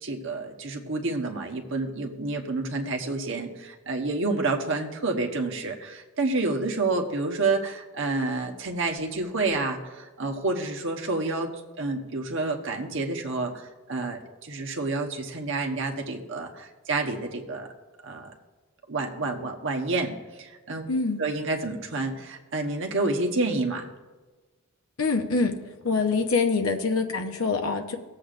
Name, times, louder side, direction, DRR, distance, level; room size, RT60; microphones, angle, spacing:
voice 1, 0.0-11.5 11.8-17.7 18.0-18.3 18.9-20.1 20.4-20.8 21.2-23.9, right 3 dB, 60° right, 2 dB, 1.1 m, -29 dB
voice 2, 20.9-21.2 25.0-25.6 25.8-28.0, left 4 dB, 75° left, 4 dB, 0.9 m, -25 dB
18.5 x 7.7 x 2.5 m, 1.3 s
head